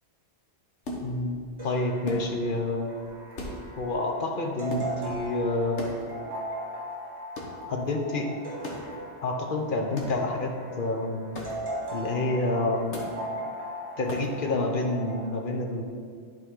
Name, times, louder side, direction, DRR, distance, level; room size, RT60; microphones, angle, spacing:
sound 1, 0.8-1.5 2.0-2.7 2.9-3.1 3.3-4.1 4.7-5.4 5.8-6.4 7.3-7.7 8.6-9.0 10.0-10.4 11.3-11.8 12.9-13.3 14.0-14.5, left 1 dB, 75° left, 1.4 m, -38 dB
voice 1, 1.0-2.9 3.8-6.0 7.7-8.3 9.2-11.3 11.9-13.0 14.0-15.8, left 2 dB, 50° left, 2 dB, 0.8 m, -28 dB
sound 2, 1.6-15.3, equal, 30° right, 1.8 m, -39 dB
11.0 x 4.7 x 3.7 m, 2.1 s
omnidirectional pair, 1.2 m